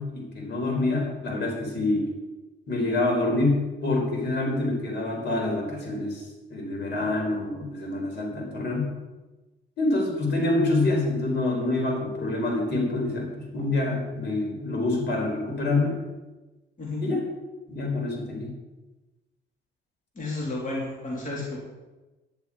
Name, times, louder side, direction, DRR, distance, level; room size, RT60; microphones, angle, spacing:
voice 1, 0.0-2.1 2.7-6.2 6.5-8.9 9.8-16.0 17.0-17.2 17.7-18.5 21.3-21.5, left 2 dB, 60° left, 0 dB, 4.0 m, -26 dB
voice 2, 16.8-17.1 20.2-21.6, left 2 dB, 40° left, -4 dB, 3.0 m, -32 dB
10.5 x 10.0 x 4.9 m, 1.1 s
cardioid pair, 90°, 20 cm